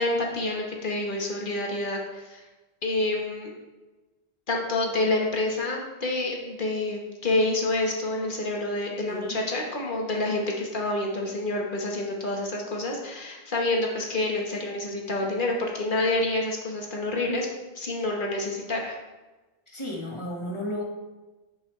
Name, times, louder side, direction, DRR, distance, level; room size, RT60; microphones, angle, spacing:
voice 1, 0.0-2.4 2.8-3.5 4.5-17.5 17.7-19.0, left 2 dB, 55° left, -1 dB, 1.4 m, -28 dB
voice 2, 9.0-9.4 19.7-20.8, left 1 dB, 30° left, -2 dB, 1.5 m, -33 dB
9.1 x 5.4 x 3.2 m, 1.2 s
omnidirectional pair, 1.1 m